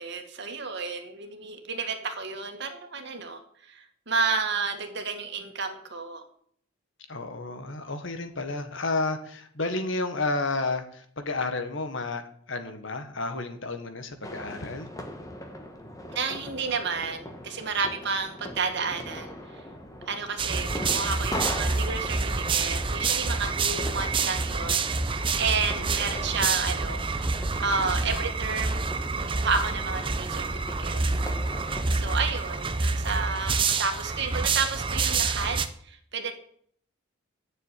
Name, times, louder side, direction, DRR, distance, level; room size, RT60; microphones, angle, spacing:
voice 1, 0.0-3.4 3.7-6.2 16.2-19.3 20.1-27.0 27.6-28.9 29.2-31.2 31.9-35.6 35.8-36.3, right 4 dB, 55° right, 5 dB, 1.9 m, -31 dB
voice 2, 7.1-12.2 12.5-14.9, left 3 dB, 60° left, 7 dB, 1.5 m, -31 dB
sound 1, 14.2-32.1, left 1 dB, 15° left, 1.5 m, -40 dB
sound 2, 20.4-35.7, right 4 dB, 25° right, 0.7 m, -28 dB
10.5 x 7.0 x 8.9 m, 0.63 s
head